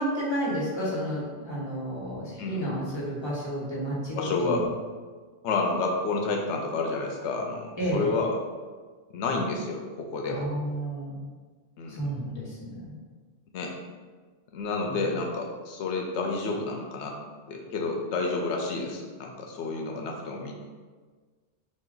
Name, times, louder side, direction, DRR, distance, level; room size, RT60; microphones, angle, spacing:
voice 1, 0.0-4.6 7.8-8.1 10.3-11.2 11.9-12.9 14.9-15.0, right 1 dB, 25° left, -7 dB, 1.2 m, -31 dB
voice 2, 4.1-4.7 5.4-8.3 9.1-10.4 11.8-12.1 13.5-13.7 14.5-17.2 17.5-20.5, left 3 dB, 80° left, 1 dB, 0.9 m, -30 dB
4.2 x 2.5 x 3.8 m, 1.5 s
omnidirectional pair, 1.2 m